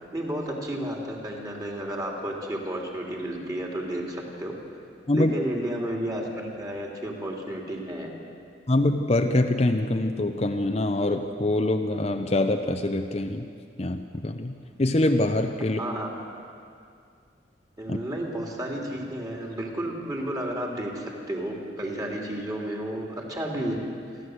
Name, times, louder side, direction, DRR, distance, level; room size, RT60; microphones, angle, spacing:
voice 1, 0.0-4.6 5.1-8.1 15.8-16.1 17.8-23.8, right 1 dB, 20° right, -1 dB, 3.1 m, -32 dB
voice 2, 8.7-13.5 13.8-15.8 17.9-18.0, left 1 dB, 35° left, 5 dB, 0.8 m, -24 dB
29.5 x 12.0 x 7.9 m, 2.3 s
head